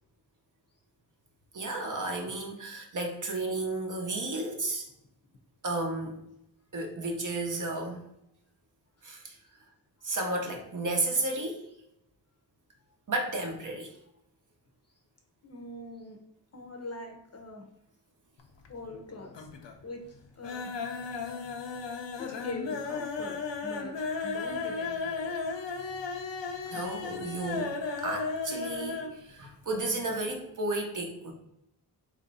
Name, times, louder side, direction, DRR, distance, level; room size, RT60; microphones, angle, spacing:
voice 1, 1.5-4.8 5.6-6.2 6.7-8.0 9.0-9.4 10.0-11.6 13.1-13.9 26.7-31.3, right 2 dB, 45° right, 2 dB, 0.7 m, -33 dB
voice 2, 15.4-16.2 16.5-17.7 18.7-19.5 19.8-20.7 22.2-23.9 24.2-25.4, left 2 dB, 40° left, 2 dB, 0.6 m, -42 dB
sound 1, 18.4-19.0 19.3-19.8 20.1-29.2 29.4-29.5 29.9-30.0, left 4 dB, 90° left, 0.6 m, -35 dB
3.0 x 2.5 x 4.0 m, 0.78 s
wide cardioid pair, 145°, 42 cm